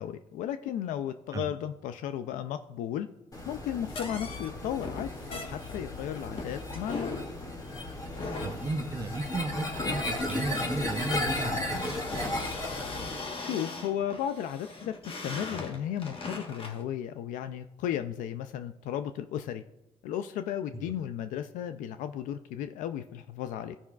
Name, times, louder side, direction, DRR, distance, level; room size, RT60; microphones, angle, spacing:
voice 1, 0.0-3.1 3.5-7.1 13.4-19.6 20.0-23.8, left 10 dB, 80° left, 10 dB, 0.4 m, -34 dB
sound 1, 3.3-13.2, left 1 dB, 25° left, 2.2 m, -35 dB
sound 2, 3.9-16.8, left 3 dB, 45° left, 1.3 m, -40 dB
voice 2, 8.4-11.9 20.7-20.9, right 3 dB, 25° right, 7 dB, 0.6 m, -35 dB
15.0 x 5.5 x 2.4 m, 0.93 s
cardioid pair, 80°, 13 cm